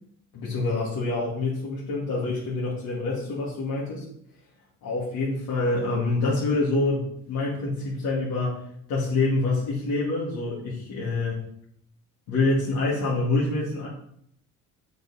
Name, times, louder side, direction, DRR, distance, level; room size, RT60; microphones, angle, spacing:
voice 1, 0.3-4.1 4.8-8.6 8.9-11.4 12.3-13.9, left 2 dB, 70° left, -7 dB, 2.5 m, -26 dB
8.0 x 5.2 x 4.2 m, 0.69 s
cardioid pair, 115°, 31 cm